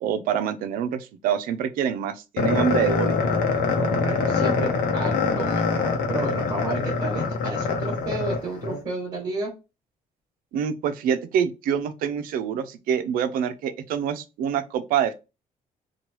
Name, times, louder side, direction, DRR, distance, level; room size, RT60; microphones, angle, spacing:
voice 1, 0.0-3.1 10.5-15.1, right 8 dB, 90° right, 0.4 m, -26 dB
sound 1, 2.4-8.8, left 4 dB, 85° left, 0.7 m, -24 dB
voice 2, 3.8-9.5, right 2 dB, 30° right, 1.2 m, -31 dB
2.9 x 2.2 x 3.0 m
cardioid pair, 175°, 14 cm